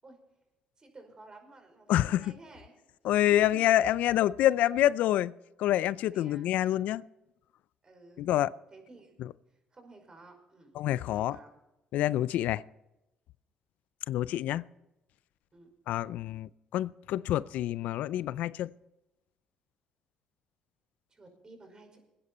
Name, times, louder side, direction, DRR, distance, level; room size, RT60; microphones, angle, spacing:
voice 1, 0.8-2.8 3.1-3.6 6.1-6.5 7.8-8.2 8.7-9.2 9.5-10.7 11.0-11.5 12.2-12.3 15.5-15.7 21.1-22.0, right 2 dB, 30° right, 5.3 m, -53 dB
voice 2, 1.9-2.2 3.0-5.3 5.6-7.0 8.2-8.5 9.2-9.3 10.8-11.4 11.9-12.6 14.1-14.6 15.9-18.7, left 13 dB, 75° left, 0.4 m, -27 dB
21.0 x 9.9 x 4.2 m
supercardioid pair, 80°, 3 cm